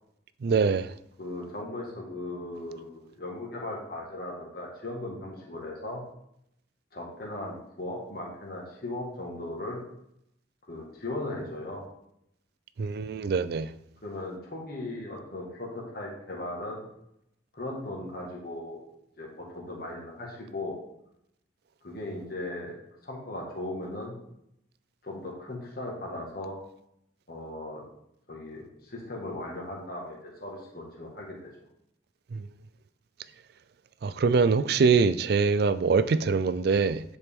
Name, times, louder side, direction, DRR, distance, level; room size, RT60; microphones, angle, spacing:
voice 1, 0.4-0.9 12.8-13.7 32.3-32.4 34.0-37.0, right 5 dB, 55° right, 0.3 m, -24 dB
voice 2, 1.2-6.0 6.9-9.8 10.7-11.8 14.0-16.8 17.5-18.8 19.2-20.8 21.8-22.8 23.0-24.1 25.0-26.6 27.3-27.8 28.3-31.5, left 1 dB, 50° left, 1.7 m, -37 dB
9.6 x 4.5 x 3.6 m
head